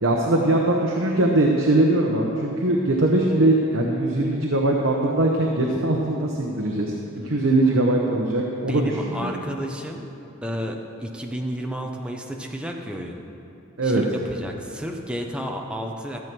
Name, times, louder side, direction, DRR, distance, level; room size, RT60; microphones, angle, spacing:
voice 1, 0.0-6.9 7.2-9.4 13.8-14.0, right 2 dB, 65° right, 0 dB, 1.0 m, -21 dB
voice 2, 8.7-10.1 10.4-13.2 13.8-14.0 14.3-16.2, equal, 5° right, 1 dB, 0.8 m, -31 dB
13.5 x 7.7 x 6.1 m, 2.9 s
head